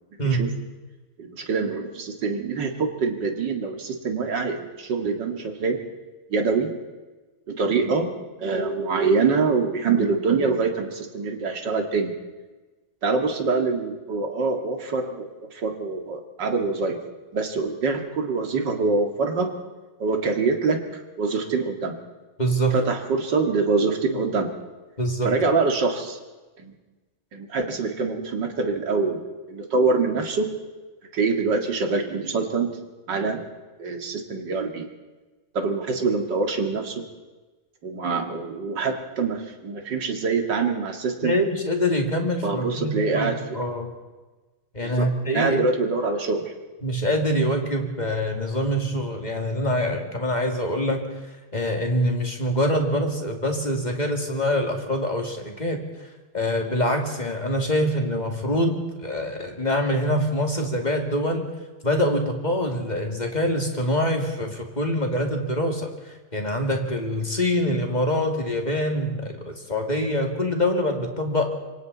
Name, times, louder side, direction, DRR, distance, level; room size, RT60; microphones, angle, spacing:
voice 1, 1.2-5.8 6.3-6.7 7.5-8.1 8.4-12.1 13.0-17.0 17.3-19.5 20.0-22.0 22.7-24.5 25.2-26.2 26.6-26.7 27.3-30.5 31.1-32.7 33.1-33.4 33.8-34.9 35.5-37.0 37.8-41.3 42.4-43.6 44.8-45.1 45.3-46.5, right 4 dB, 60° right, 4 dB, 2.7 m, -25 dB
voice 2, 22.4-22.7 25.0-25.4 41.2-43.9 44.7-45.6 46.8-51.0 51.5-55.8 56.3-61.5 61.8-71.5, equal, 20° left, 2 dB, 2.5 m, -25 dB
26.5 x 24.5 x 4.1 m, 1.2 s
omnidirectional pair, 2.2 m